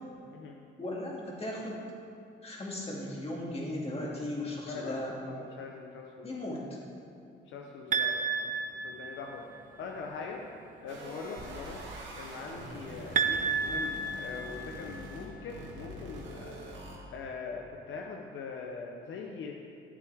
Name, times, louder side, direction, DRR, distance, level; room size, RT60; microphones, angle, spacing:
voice 1, 0.8-1.8 2.4-5.2 6.2-6.8, left 1 dB, 30° left, -3 dB, 2.4 m, -37 dB
voice 2, 4.6-6.3 7.4-8.5 8.8-10.4 10.8-11.8 12.1-16.6 17.1-19.5, left 4 dB, 75° left, 1 dB, 0.8 m, -42 dB
sound 1, 7.9-9.6 13.2-15.2, right 5 dB, 40° right, 0.5 m, -31 dB
sound 2, 10.9-17.0, right 1 dB, 70° right, 1.8 m, -44 dB
11.0 x 8.3 x 3.5 m, 2.6 s
cardioid pair, 90°, 20 cm